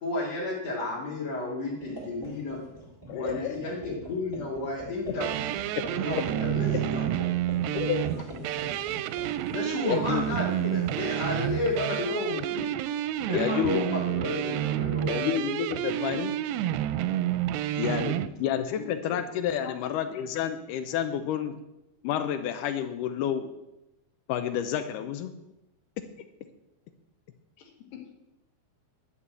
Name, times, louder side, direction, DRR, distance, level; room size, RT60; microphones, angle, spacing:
voice 1, 0.0-2.6 3.1-5.3 5.8-7.2 9.5-12.7 13.3-15.3 17.5-17.7 18.1-18.2, left 2 dB, 50° left, -5 dB, 2.9 m, -32 dB
sound 1, 1.8-12.2, equal, 5° left, 3.4 m, -45 dB
voice 2, 3.1-3.6 7.7-8.1 9.9-10.2 13.3-13.8 15.1-16.4 17.8-21.6 22.0-23.5 24.3-25.3, left 9 dB, 90° left, 8 dB, 1.8 m, -29 dB
sound 2, 5.2-18.3, right 12 dB, 80° right, 2.3 m, -29 dB
voice 3, 8.2-8.6 18.7-19.2 19.6-19.8 27.6-28.1, left 6 dB, 65° left, 2 dB, 3.2 m, -44 dB
11.5 x 5.5 x 8.2 m, 0.92 s
omnidirectional pair, 4.5 m